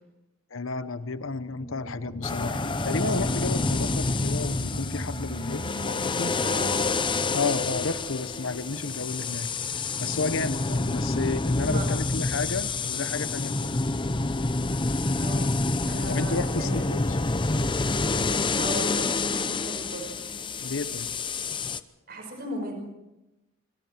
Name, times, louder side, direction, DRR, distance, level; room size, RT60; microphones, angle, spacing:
voice 1, 0.5-6.3 7.3-9.5 10.0-13.9 16.1-17.2 20.6-21.1, left 3 dB, 65° left, 13 dB, 1.0 m, -32 dB
sound 1, 1.2-10.2 10.6-10.7, equal, 50° left, 2.0 m, -38 dB
sound 2, 2.2-21.8, left 3 dB, 25° left, 0.7 m, -28 dB
voice 2, 6.4-6.7 11.6-11.9 15.2-15.5 15.8-16.9 18.6-20.1 22.1-22.7, equal, 45° right, 3 dB, 5.2 m, -36 dB
25.5 x 25.0 x 4.5 m, 0.97 s
head